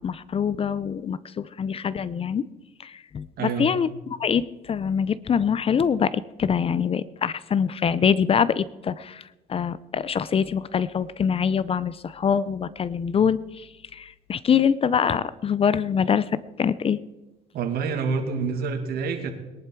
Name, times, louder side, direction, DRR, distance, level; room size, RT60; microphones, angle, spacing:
voice 1, 0.0-2.5 2.8-17.0, left 7 dB, 35° left, 18 dB, 0.6 m, -24 dB
voice 2, 3.4-3.7 17.5-19.3, right 5 dB, 70° right, 6 dB, 2.3 m, -27 dB
20.0 x 11.0 x 4.6 m, 1.1 s
cardioid pair, 110°, 17 cm